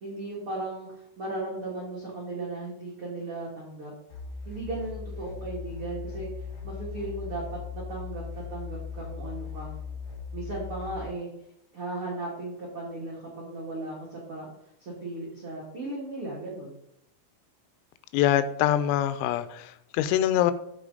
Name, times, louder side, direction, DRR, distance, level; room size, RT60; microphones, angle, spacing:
voice 1, 0.0-3.9 4.4-6.3 6.6-9.7 10.3-11.3 11.7-14.5 14.8-16.8, right 2 dB, 80° right, -4 dB, 1.2 m, -36 dB
sound 1, 4.1-11.0, left 6 dB, 55° left, 4.7 m, -38 dB
voice 2, 18.1-20.5, left 11 dB, 90° left, 12 dB, 3.3 m, -24 dB
14.0 x 5.2 x 3.9 m, 0.79 s
omnidirectional pair, 5.9 m